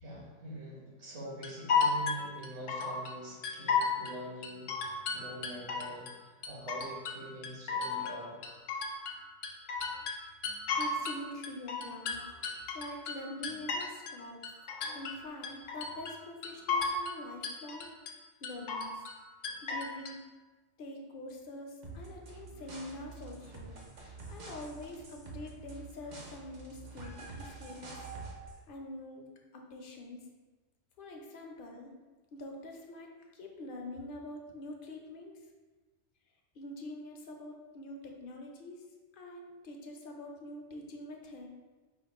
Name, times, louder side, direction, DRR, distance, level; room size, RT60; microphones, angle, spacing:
voice 1, 0.0-8.4, right 1 dB, 70° right, -4 dB, 1.4 m, -44 dB
sound 1, 1.4-3.1 3.4-4.1 4.4-6.1 6.4-7.2 7.4-9.2 9.4-11.2 11.4-14.2 14.4-15.2 15.4-16.2 16.4-17.2 17.4-18.1 18.4-19.2 19.4-20.1, left 5 dB, 90° left, 1.0 m, -33 dB
voice 2, 10.8-12.2 12.7-14.4 14.9-17.9 18.4-19.0 19.6-20.2 20.8-28.1 28.7-29.3 29.5-30.3 31.0-31.9 32.3-35.4 36.5-38.8 39.1-41.5, left 1 dB, 55° left, 1 dB, 0.8 m, -45 dB
sound 2, 21.8-28.6, right 3 dB, 45° right, 0.7 m, -47 dB
5.0 x 2.5 x 4.1 m, 1.3 s
omnidirectional pair, 1.2 m